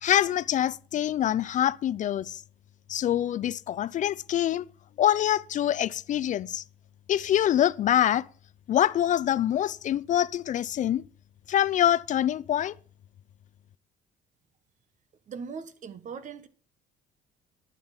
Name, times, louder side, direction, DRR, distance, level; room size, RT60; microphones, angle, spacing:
voice 1, 0.0-2.4 2.9-4.6 5.0-6.6 7.1-8.2 8.7-11.0 11.5-12.7, left 11 dB, 50° left, 0.4 m, -25 dB
voice 2, 15.3-16.5, right 6 dB, 45° right, 1.3 m, -39 dB
10.5 x 8.7 x 5.7 m
cardioid pair, 110°, 17 cm